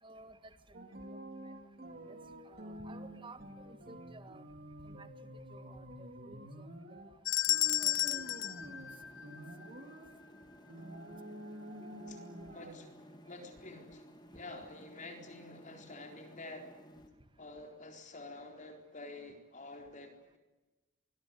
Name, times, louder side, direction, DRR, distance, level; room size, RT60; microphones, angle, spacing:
voice 1, 0.0-0.5 1.1-1.2 1.4-1.5 2.1-2.2 2.4-4.4 4.8-5.1 5.5-7.2 7.8-8.3, right 2 dB, 25° right, 10 dB, 1.7 m, -54 dB
sound 1, 0.7-7.1 7.5-9.0 9.2-10.1 10.7-12.8, right 1 dB, 50° right, 4.1 m, -48 dB
sound 2, 7.3-9.7, left 13 dB, 70° left, 0.8 m, -32 dB
sound 3, 7.5-17.1, equal, 20° left, 2.6 m, -56 dB
voice 2, 12.1-14.1 14.3-16.8 17.4-20.4, left 2 dB, 40° left, 4 dB, 4.1 m, -49 dB
26.0 x 20.5 x 9.5 m, 1.1 s
head